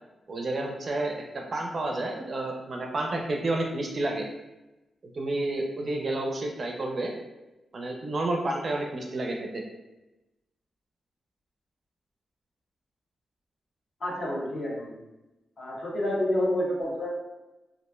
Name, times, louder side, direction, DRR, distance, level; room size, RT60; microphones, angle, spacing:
voice 1, 0.3-4.3 5.1-7.1 7.7-9.6, right 2 dB, 40° right, 1 dB, 0.4 m, -30 dB
voice 2, 14.0-15.0 15.6-17.1, left 1 dB, 55° left, -5 dB, 0.9 m, -29 dB
2.9 x 2.4 x 2.2 m, 0.99 s
wide cardioid pair, 130°, 0 cm